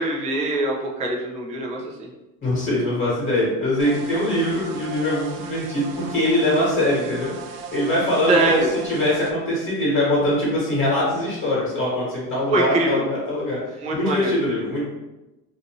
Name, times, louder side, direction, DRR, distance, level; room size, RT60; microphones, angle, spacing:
voice 1, 0.0-2.1 8.3-8.7 12.5-13.1 13.8-14.3, right 2 dB, 15° right, -2 dB, 0.4 m, -23 dB
voice 2, 2.4-14.8, left 1 dB, 30° left, -7 dB, 1.3 m, -23 dB
sound 1, 3.8-9.3, right 5 dB, 70° right, 0.5 m, -37 dB
2.7 x 2.5 x 2.9 m, 1.0 s
supercardioid pair, 120°, 43 cm